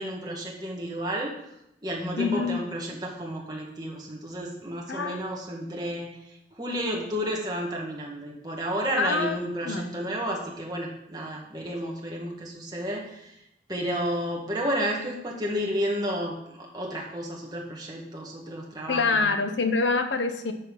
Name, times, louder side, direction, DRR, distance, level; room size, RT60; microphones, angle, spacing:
voice 1, 0.0-1.3 1.8-6.1 6.5-13.3 13.7-19.2, equal, 20° right, -2 dB, 1.8 m, -31 dB
voice 2, 2.2-2.6 4.9-5.2 9.0-9.4 9.6-9.9 18.9-20.5, left 4 dB, 90° left, 7 dB, 0.9 m, -25 dB
12.5 x 4.5 x 5.4 m, 0.81 s
head